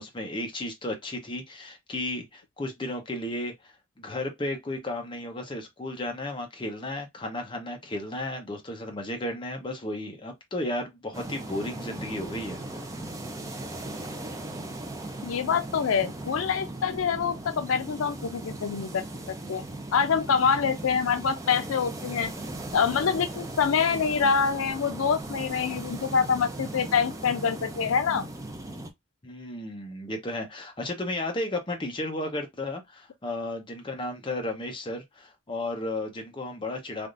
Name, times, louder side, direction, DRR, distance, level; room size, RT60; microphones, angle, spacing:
voice 1, 0.0-3.7 4.0-12.6 29.2-37.1, left 1 dB, 25° left, 0.6 m, -34 dB
sound 1, 11.1-28.9, right 2 dB, 15° right, 0.4 m, -38 dB
voice 2, 15.2-19.0 19.5-19.6 19.9-22.3 22.7-28.3, left 6 dB, 80° left, 0.4 m, -25 dB
3.4 x 2.4 x 2.4 m
head